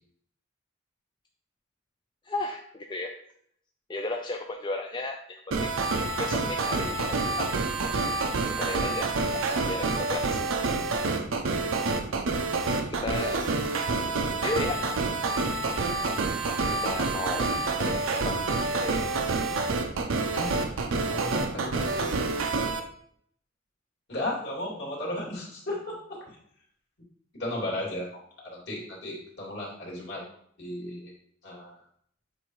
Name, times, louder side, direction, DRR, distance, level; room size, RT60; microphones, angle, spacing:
voice 1, 2.3-3.1 3.9-5.8 6.2-7.5 8.4-10.7 11.6-11.9 12.9-13.7 14.3-14.9 16.8-18.4 18.7-19.1, left 2 dB, 25° left, 3 dB, 0.3 m, -35 dB
sound 1, 5.5-22.8, right 3 dB, 85° right, 0.7 m, -28 dB
voice 2, 20.3-20.6 20.9-22.0 24.1-26.4 27.4-30.2 30.6-31.1 31.4-31.8, left 1 dB, 60° left, -5 dB, 2.6 m, -35 dB
7.7 x 2.7 x 4.7 m, 0.65 s
head